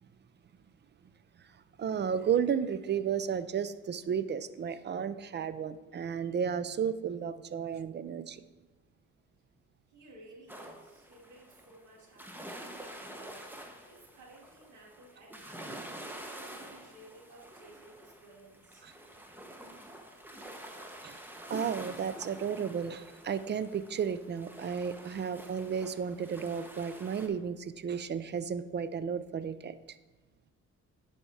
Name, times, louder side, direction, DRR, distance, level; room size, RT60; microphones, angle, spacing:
voice 1, 1.8-8.4 18.8-18.9 21.0-21.2 21.5-29.8, right 7 dB, 35° right, 14 dB, 0.4 m, -33 dB
voice 2, 9.9-13.5 13.9-15.9 16.3-18.9, right 1 dB, 70° right, -1 dB, 2.3 m, -56 dB
sound 1, 10.5-27.3, right 1 dB, 5° right, 0.9 m, -48 dB
10.0 x 4.3 x 4.8 m, 1.2 s
cardioid pair, 90°, 30 cm